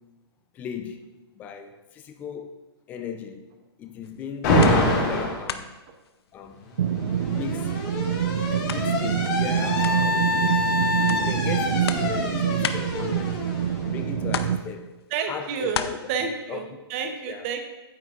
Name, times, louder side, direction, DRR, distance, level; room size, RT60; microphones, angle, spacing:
voice 1, 0.5-1.1 1.4-2.5 2.9-3.4 3.8-5.7 6.3-6.6 7.2-7.8 8.5-10.3 10.9-13.4 13.9-14.9 15.3-16.0 16.5-16.7 17.3-17.5, left 7 dB, 10° left, 0.4 m, -36 dB
sound 1, 4.0-5.2 5.4-7.0 7.4-13.9 14.3-15.9, left 8 dB, 70° left, 0.6 m, -36 dB
Alarm, 4.4-5.4 6.6-14.3, left 2 dB, 35° left, 1.9 m, -26 dB
sound 2, 6.8-14.6, right 9 dB, 90° right, 0.5 m, -26 dB
voice 2, 15.1-15.8 16.1-17.6, right 6 dB, 30° right, 0.7 m, -30 dB
9.2 x 8.0 x 2.4 m
hypercardioid pair, 160°, 14 cm